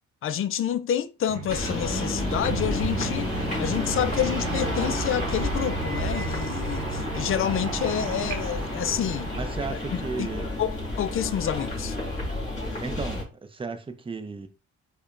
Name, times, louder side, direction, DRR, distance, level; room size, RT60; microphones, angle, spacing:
voice 1, 0.2-3.3 3.6-9.3 9.7-9.8 10.2-10.3 10.6-12.0, left 10 dB, 45° left, 0.4 m, -28 dB
sound 1, 1.3-8.1, right 8 dB, 60° right, 0.5 m, -39 dB
sound 2, 1.5-13.2, left 1 dB, 25° left, 1.9 m, -30 dB
sound 3, 2.4-9.6, right 4 dB, 85° right, 0.8 m, -36 dB
voice 2, 9.3-10.5 12.8-14.5, right 4 dB, 20° right, 0.5 m, -34 dB
4.9 x 2.2 x 2.5 m
cardioid pair, 90°, 30 cm